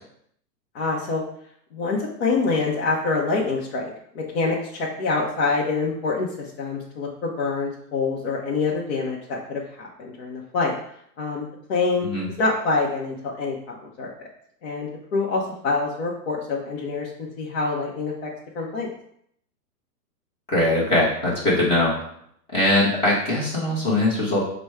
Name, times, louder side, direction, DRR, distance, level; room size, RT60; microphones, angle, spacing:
voice 1, 0.7-1.2 1.7-3.9 4.1-6.3 6.6-10.7 11.2-12.1 12.4-14.3 14.6-18.3 18.5-18.9, left 3 dB, 40° left, -4 dB, 0.8 m, -26 dB
voice 2, 20.5-21.9 22.5-24.4, left 1 dB, 10° left, -6 dB, 0.9 m, -21 dB
5.0 x 2.2 x 4.7 m, 0.69 s
hypercardioid pair, 155°, 50 cm